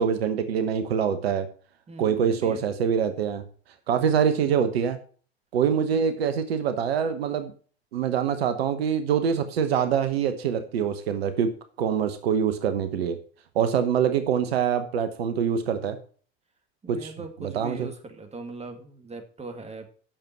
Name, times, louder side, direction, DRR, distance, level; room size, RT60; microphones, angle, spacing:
voice 1, 0.0-1.5 2.0-3.4 3.9-5.0 5.5-7.5 7.9-11.5 11.8-13.2 13.5-16.0 16.9-17.1 17.4-17.9, right 7 dB, 75° right, 10 dB, 1.0 m, -24 dB
voice 2, 1.9-2.6 16.8-19.8, right 3 dB, 20° right, 6 dB, 2.1 m, -40 dB
9.0 x 6.8 x 5.8 m, 0.42 s
hypercardioid pair, 70°, 31 cm